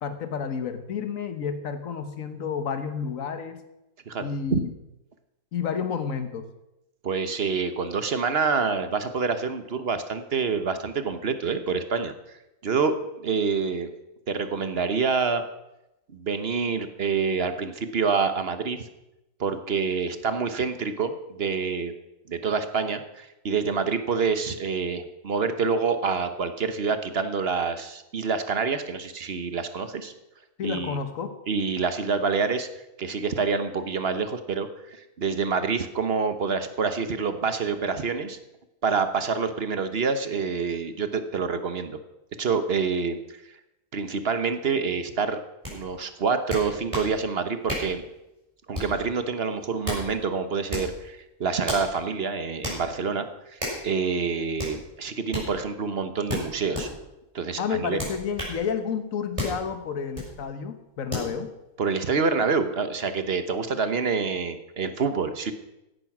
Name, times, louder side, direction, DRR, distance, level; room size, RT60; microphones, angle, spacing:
voice 1, 0.0-3.6 4.2-4.7 5.5-6.5 30.6-31.4 57.6-61.5, left 6 dB, 55° left, 9 dB, 1.6 m, -30 dB
voice 2, 7.0-12.4 12.6-13.9 14.3-15.4 16.1-18.9 19.4-21.9 22.3-30.1 30.6-31.0 31.5-32.7 33.0-38.4 38.8-42.0 42.4-43.6 43.9-45.4 45.7-48.0 48.7-56.9 57.3-58.0 61.8-65.5, right 5 dB, 45° right, 9 dB, 1.1 m, -27 dB
sound 1, 45.6-45.8 46.5-47.1 47.7-47.9 48.7-49.0 49.6-50.1 50.7-50.9 51.6-51.9 52.6-52.8 53.6-53.8 54.6-54.8 55.3-55.5 56.3-56.9 58.0-58.6 59.4-59.6 60.1-60.3 61.1-61.3, left 1 dB, 20° right, 6.0 m, -31 dB
16.0 x 10.5 x 6.0 m, 0.93 s
omnidirectional pair, 1.7 m